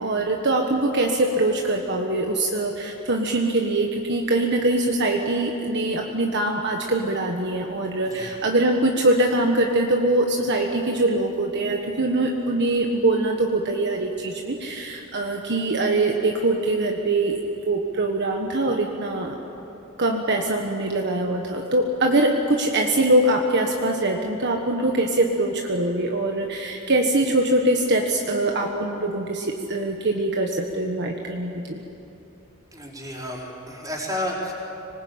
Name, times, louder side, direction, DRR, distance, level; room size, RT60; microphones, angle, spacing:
voice 1, 0.0-17.4 17.7-19.3 20.0-31.8, right 2 dB, 55° right, 1 dB, 1.5 m, -23 dB
voice 2, 8.0-8.3 32.7-34.5, left 1 dB, 15° right, -3 dB, 4.9 m, -31 dB
25.5 x 20.0 x 8.7 m, 2.9 s
head